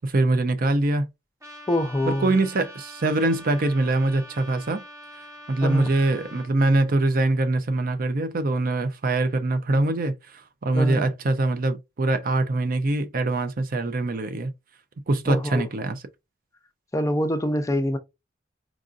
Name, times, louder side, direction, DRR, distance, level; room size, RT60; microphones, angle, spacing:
voice 1, 0.0-1.1 2.1-4.8 5.5-14.5 15.1-16.0, right 2 dB, 50° right, 0.5 m, -23 dB
Trumpet, 1.4-6.5, equal, 15° right, 1.0 m, -44 dB
voice 2, 1.7-2.3 5.6-5.9 10.7-11.0 15.3-15.7 16.9-18.0, equal, 15° left, 0.5 m, -25 dB
4.7 x 2.5 x 2.4 m
head